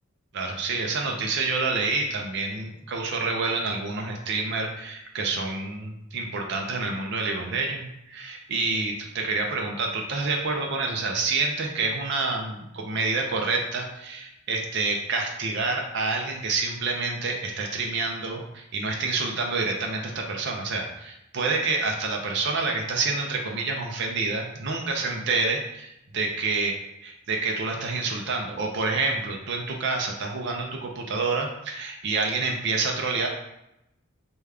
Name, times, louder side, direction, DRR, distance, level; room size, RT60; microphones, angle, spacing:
voice 1, 0.3-26.8 27.0-33.3, right 3 dB, 55° right, 1 dB, 0.5 m, -28 dB
5.0 x 2.3 x 3.2 m, 0.84 s
head